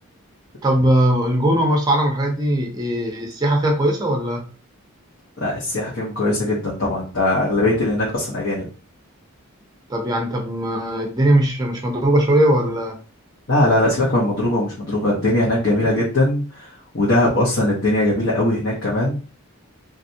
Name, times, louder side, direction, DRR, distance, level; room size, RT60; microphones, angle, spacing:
voice 1, 0.6-4.4 9.9-13.0, right 1 dB, 15° right, 2 dB, 0.7 m, -19 dB
voice 2, 5.4-8.7 13.5-19.2, left 1 dB, 55° left, -5 dB, 1.0 m, -20 dB
3.2 x 2.5 x 2.7 m, 0.36 s
head